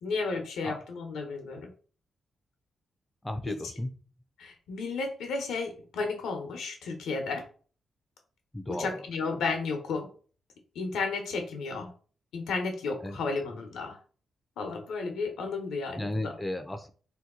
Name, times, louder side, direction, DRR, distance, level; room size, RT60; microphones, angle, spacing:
voice 1, 0.0-1.7 4.4-7.5 8.7-10.1 10.7-11.9 12.3-14.0 14.6-16.3, left 4 dB, 90° left, 3 dB, 0.8 m, -33 dB
voice 2, 3.2-3.9 8.5-9.0 13.0-13.2 16.0-16.9, left 1 dB, 10° left, 7 dB, 0.4 m, -34 dB
2.8 x 2.3 x 3.6 m, 0.40 s
cardioid pair, 85°, 0 cm